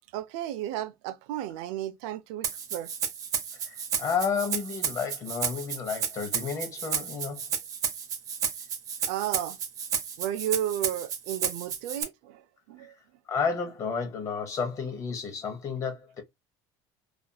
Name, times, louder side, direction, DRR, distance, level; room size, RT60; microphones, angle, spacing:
voice 1, 0.1-2.9 9.1-9.6 10.2-12.4 12.7-12.9, right 12 dB, 75° right, 0.4 m, -33 dB
Rattle (instrument), 2.4-12.0, right 7 dB, 40° right, 0.7 m, -32 dB
voice 2, 3.6-7.4 13.3-16.2, left 6 dB, 35° left, 0.7 m, -31 dB
2.8 x 2.4 x 2.2 m
cardioid pair, 140°, 9 cm